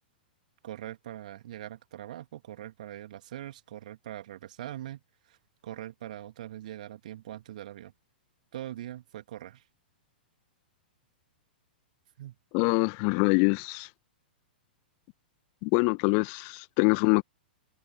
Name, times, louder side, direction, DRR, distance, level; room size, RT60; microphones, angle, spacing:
voice 1, 0.6-5.0 5.3-5.4 5.6-7.9 8.5-9.6 12.2-12.4, right 13 dB, 50° right, 2.7 m, -42 dB
voice 2, 12.5-13.9 15.6-17.2, left 40 dB or more, 35° left, 1.4 m, -24 dB
figure-of-eight pair, 105°, 5 cm